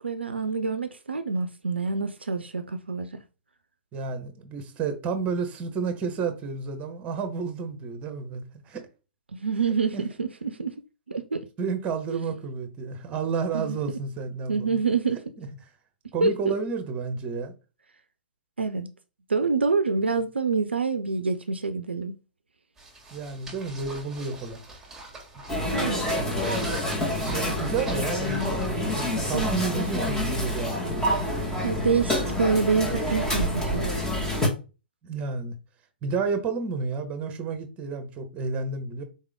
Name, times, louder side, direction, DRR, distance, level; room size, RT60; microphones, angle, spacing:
voice 1, 0.0-3.1 9.3-10.7 11.1-11.4 12.1-12.2 13.5-13.8 14.5-15.2 16.2-16.5 18.6-18.9 19.3-22.2 25.7-26.1 29.3-29.5 31.6-33.9, right 4 dB, 85° right, 0.5 m, -26 dB
voice 2, 3.9-8.8 9.9-10.0 11.6-14.8 15.4-15.5 16.1-17.5 23.1-24.6 26.2-26.6 27.2-28.7 28.9-31.2 35.0-35.5 36.0-39.0, right 5 dB, 25° right, 1.1 m, -31 dB
sound 1, 22.8-28.7, right 2 dB, 10° right, 1.8 m, -43 dB
sound 2, 25.5-34.5, left 1 dB, 10° left, 1.6 m, -27 dB
4.2 x 3.6 x 3.5 m
figure-of-eight pair, 115°, 6 cm